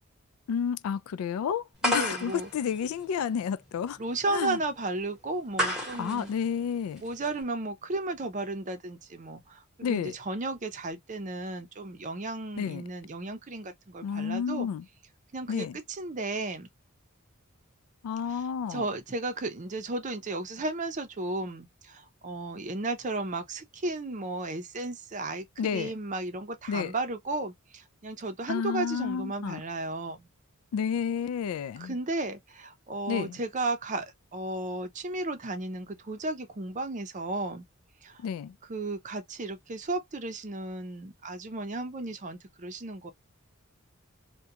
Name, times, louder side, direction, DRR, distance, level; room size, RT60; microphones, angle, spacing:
voice 1, 0.5-4.0 4.3-4.6 5.6-7.0 9.8-10.2 12.6-12.8 14.0-14.9 15.5-15.8 18.0-18.9 25.6-25.9 26.7-26.9 28.5-29.6 30.7-31.9 33.1-33.4 38.2-38.6, left 7 dB, 80° left, 0.3 m, -31 dB
sound 1, 1.8-7.4, equal, 5° right, 1.0 m, -34 dB
voice 2, 1.8-2.5 4.0-6.3 7.0-14.7 15.3-16.7 18.3-18.4 18.7-30.3 31.8-37.6 38.0-38.2 38.7-43.1, right 2 dB, 35° right, 0.6 m, -34 dB
2.4 x 2.2 x 2.8 m
head